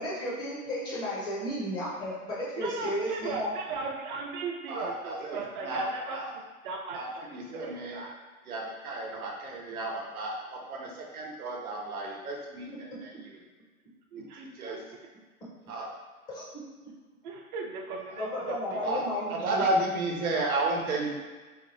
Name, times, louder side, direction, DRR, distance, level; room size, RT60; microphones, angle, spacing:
voice 1, 0.0-3.5 16.3-16.4 18.2-19.6, left 1 dB, 10° left, -7 dB, 0.6 m, -33 dB
voice 2, 2.6-8.1 14.1-14.8 17.2-19.1, right 4 dB, 35° right, 0 dB, 0.5 m, -38 dB
voice 3, 4.7-6.3 6.9-8.1 8.5-13.1 14.4-14.8 15.7-15.9 18.1-18.2 18.8-19.0 19.3-21.1, right 2 dB, 80° right, 0 dB, 1.0 m, -33 dB
3.0 x 2.6 x 3.9 m, 1.3 s
hypercardioid pair, 140°, 42 cm